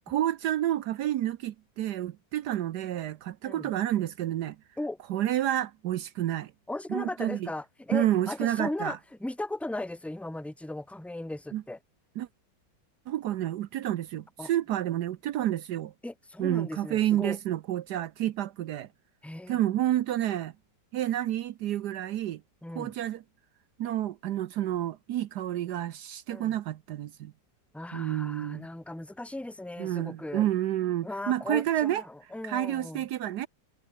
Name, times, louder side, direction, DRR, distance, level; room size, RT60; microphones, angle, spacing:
voice 1, 0.1-4.6 5.1-6.5 6.9-7.5 7.9-9.0 11.5-11.6 12.2-12.3 13.1-15.9 16.4-18.9 19.5-20.5 20.9-22.4 22.7-23.2 23.8-27.3 27.9-28.7 29.8-32.0 32.4-33.5, right 12 dB, 70° right, 1.2 m, -29 dB
voice 2, 6.7-11.8 14.4-14.5 16.0-17.4 19.2-19.6 22.6-22.9 26.3-26.6 27.7-30.4 31.0-33.0, left 2 dB, ahead, 0.9 m, -37 dB
omnidirectional pair, 1.9 m